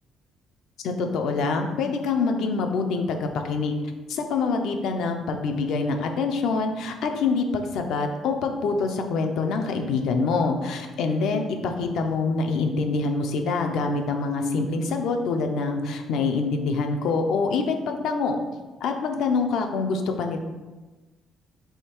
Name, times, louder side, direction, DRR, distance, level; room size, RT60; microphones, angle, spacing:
voice 1, 0.8-3.8 4.1-18.4 18.8-20.4, left 4 dB, 65° left, 5 dB, 0.5 m, -25 dB
3.5 x 3.1 x 4.4 m, 1.2 s
cardioid pair, 180°, 0 cm